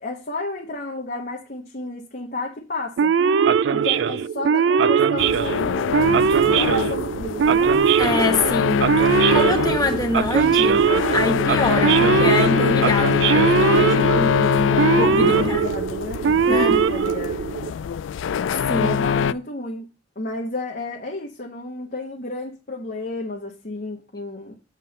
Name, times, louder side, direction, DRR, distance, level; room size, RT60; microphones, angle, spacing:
voice 1, 0.0-3.1 3.7-6.0 6.5-7.8 14.7-17.5 18.8-19.9 20.1-24.6, left 2 dB, 50° left, 1.3 m, -31 dB
Male speech man speaking / Siren, 3.0-17.7, right 6 dB, 65° right, 0.3 m, -20 dB
sound 1, 5.2-19.3, left 7 dB, 80° left, 0.3 m, -23 dB
voice 2, 8.0-15.6 16.4-16.8 18.7-19.0, left 2 dB, 20° left, 1.2 m, -25 dB
7.7 x 3.7 x 6.6 m
head